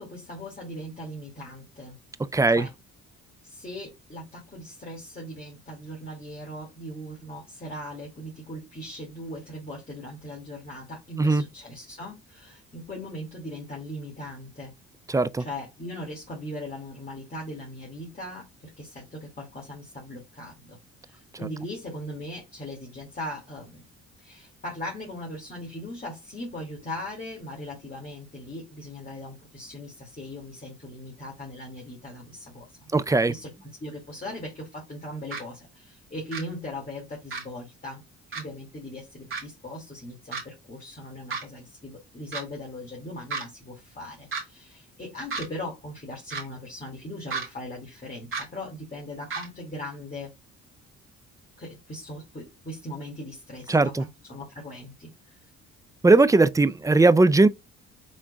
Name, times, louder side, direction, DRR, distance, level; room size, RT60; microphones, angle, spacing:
voice 1, 0.0-2.0 2.5-2.7 3.4-14.7 15.4-20.8 21.0-23.9 24.2-32.9 33.3-38.0 38.4-50.3 51.6-55.4, left 1 dB, 30° left, 2.2 m, -39 dB
voice 2, 2.3-2.7 11.2-11.4 15.1-15.4 32.9-33.3 53.7-54.0 56.0-57.5, right 3 dB, 10° right, 0.3 m, -19 dB
sound 1, 35.3-35.4 36.3-36.4 37.3-37.4 38.3-38.4 39.3-39.4 40.3-40.4 41.3-41.4 42.3-42.4 43.3-43.4 44.3-44.4 45.3-45.4 46.3-46.4 47.3-47.5 48.3-48.4 49.3-49.5, right 4 dB, 45° right, 2.1 m, -31 dB
6.1 x 3.7 x 2.3 m
cardioid pair, 90°, 30 cm